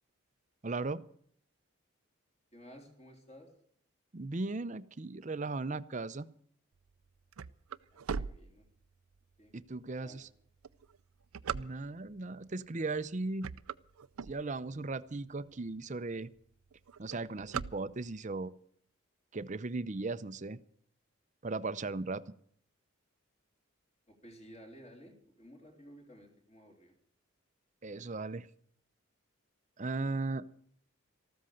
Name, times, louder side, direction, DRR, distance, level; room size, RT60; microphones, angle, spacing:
voice 1, 0.6-1.0 4.1-6.3 9.5-10.3 11.5-13.5 14.3-16.3 17.0-18.5 19.3-20.6 21.4-22.2 27.8-28.5 29.8-30.5, right 3 dB, 35° right, 15 dB, 0.6 m, -37 dB
voice 2, 2.5-3.5 7.9-8.6 9.4-9.5 10.0-10.2 24.1-26.9, equal, 30° left, 2 dB, 3.6 m, -54 dB
sound 1, 6.9-9.2 9.7-9.8 10.5-12.2 12.8-13.0 13.3-14.9 15.4-15.5 15.7-15.8 16.1-16.4 16.7-18.3, right 6 dB, 85° right, 0.5 m, -40 dB
14.0 x 13.0 x 6.5 m, 0.63 s
head